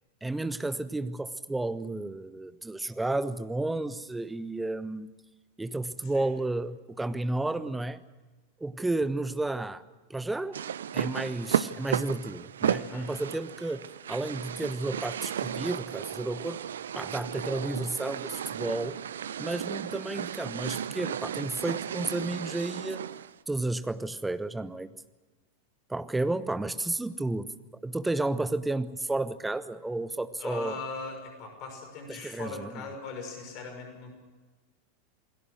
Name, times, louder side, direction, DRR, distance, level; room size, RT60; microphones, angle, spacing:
voice 1, 0.2-5.1 5.6-8.0 8.6-9.8 10.1-10.6 10.9-16.6 16.9-19.0 19.4-23.0 23.5-24.9 25.9-27.5 27.8-30.8 32.1-32.7, right 2 dB, 5° right, 13 dB, 1.1 m, -32 dB
sound 1, 10.5-23.3, right 9 dB, 65° right, 0.7 m, -34 dB
voice 2, 12.8-13.1 30.4-34.1, left 4 dB, 40° left, 5 dB, 5.9 m, -40 dB
28.5 x 21.0 x 6.3 m, 1.2 s
figure-of-eight pair, 90°, 0 cm